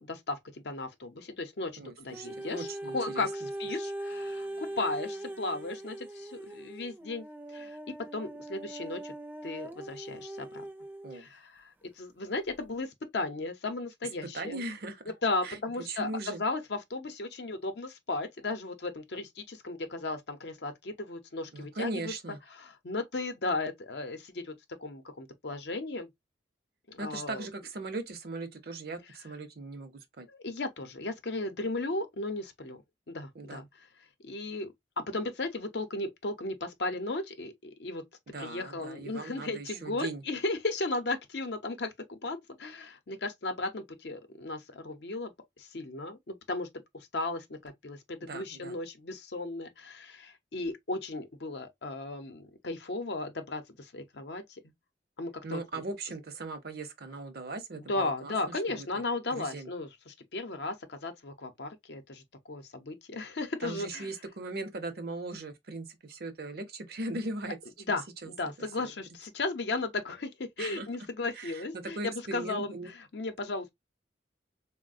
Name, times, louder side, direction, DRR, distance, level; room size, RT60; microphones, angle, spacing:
voice 1, 0.0-1.7 2.0-2.7 2.9-7.8 8.1-9.1 9.4-10.7 11.1-14.6 15.2-22.1 22.6-24.5 24.8-26.1 26.9-27.5 30.3-32.8 33.1-33.7 34.2-38.0 38.4-45.3 45.6-46.7 46.9-54.6 55.2-55.6 57.9-64.1 67.9-70.3 70.6-73.7, left 2 dB, 60° left, 0.7 m, -35 dB
voice 2, 1.8-3.5 11.0-11.3 14.3-15.0 15.4-16.4 21.5-22.4 27.0-30.3 33.3-33.6 38.3-40.2 48.2-48.8 55.4-58.9 59.3-59.7 63.6-67.6 67.9-68.0 68.2-68.3 68.6-68.9 70.6-70.9 71.3-72.9, right 2 dB, 55° right, 0.6 m, -39 dB
sound 1, 2.1-11.2 11.9-12.0, right 1 dB, 10° right, 0.5 m, -40 dB
3.9 x 2.1 x 2.5 m
head